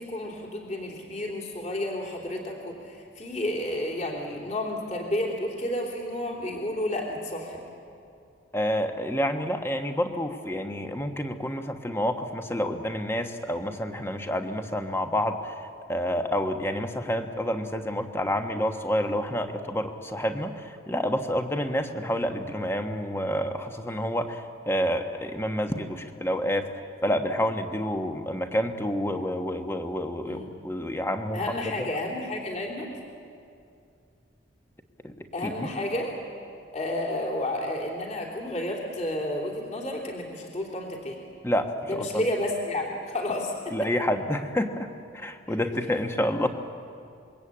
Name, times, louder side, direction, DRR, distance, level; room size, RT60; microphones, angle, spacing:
voice 1, 0.0-7.6 30.2-30.5 31.3-32.9 35.3-36.2 36.7-41.2 41.9-43.8 45.5-45.6, left 1 dB, 35° left, -1 dB, 3.4 m, -31 dB
voice 2, 8.5-15.5 15.9-26.7 27.0-31.5 35.0-35.7 41.4-42.2 43.7-44.9 45.1-46.5, equal, 10° left, 6 dB, 1.3 m, -28 dB
26.5 x 23.0 x 8.8 m, 2.4 s
head